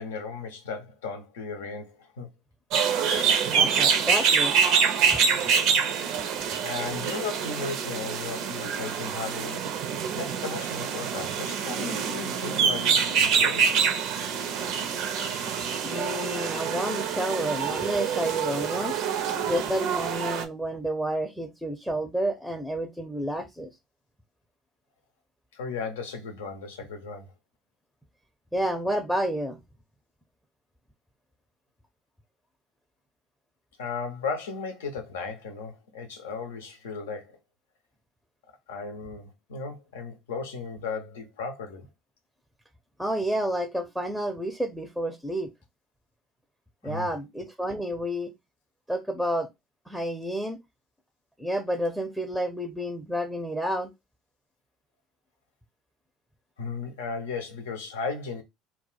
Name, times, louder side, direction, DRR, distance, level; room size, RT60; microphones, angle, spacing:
voice 1, 0.0-2.3 6.6-9.7 10.1-14.0 25.5-27.3 33.8-37.4 38.7-41.9 46.8-47.1 56.6-58.4, left 4 dB, 85° left, 0.6 m, -36 dB
sound 1, 2.7-20.4, right 6 dB, 65° right, 0.5 m, -26 dB
voice 2, 3.5-4.6 15.8-19.0 19.5-23.7 28.5-29.6 43.0-45.5 46.8-48.3 48.9-49.5 49.9-50.6 51.4-53.9, equal, ahead, 0.5 m, -30 dB
2.2 x 2.1 x 3.8 m
hypercardioid pair, 75°, 0 cm